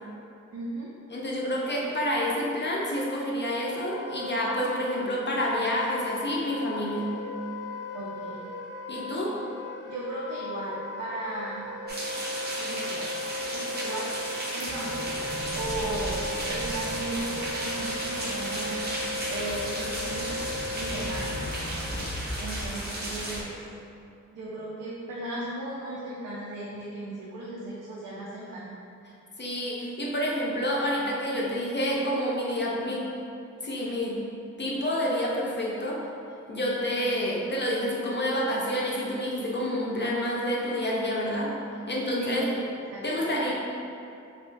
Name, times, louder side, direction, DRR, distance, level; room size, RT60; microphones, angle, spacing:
voice 1, 0.5-0.9 7.9-8.4 9.9-11.7 12.6-13.1 13.5-14.1 14.5-16.2 16.5-18.8 19.3-20.4 20.7-21.4 22.3-23.5 24.3-28.8 42.2-42.6 42.9-43.3, right 2 dB, 90° right, -5 dB, 0.5 m, -36 dB
voice 2, 1.1-7.1 8.9-9.3 29.4-33.0 33.6-34.2 34.6-36.0 36.5-41.5 41.9-42.5 43.0-43.5, equal, 35° left, -4 dB, 0.4 m, -28 dB
Wind instrument woodwind instrument, 3.8-22.0, left 1 dB, 90° left, 0.5 m, -37 dB
sound 1, 11.9-23.4, right 1 dB, 35° right, 0.5 m, -34 dB
sound 2, 14.6-22.8, equal, ahead, 0.7 m, -39 dB
3.0 x 2.7 x 3.2 m, 2.7 s
wide cardioid pair, 175°, 31 cm